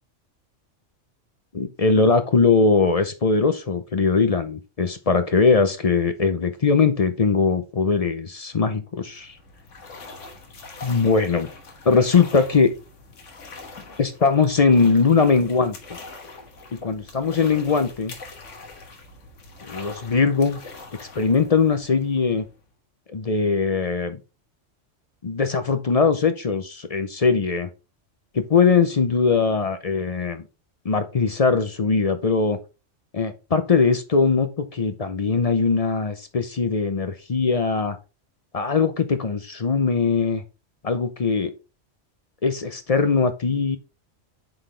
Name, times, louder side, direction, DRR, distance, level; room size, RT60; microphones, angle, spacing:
voice 1, 1.5-9.4 10.8-11.5 11.8-12.7 14.0-15.8 16.7-18.2 19.6-20.6 21.0-22.4 23.1-24.2 25.2-27.7 28.3-30.4 30.8-32.6 33.1-38.0 38.5-40.4 40.8-41.5 42.4-43.8, left 4 dB, 40° left, 10 dB, 0.6 m, -21 dB
sound 1, 9.0-22.7, left 3 dB, 80° left, 1.6 m, -43 dB
7.8 x 4.0 x 3.3 m, 0.30 s
omnidirectional pair, 1.3 m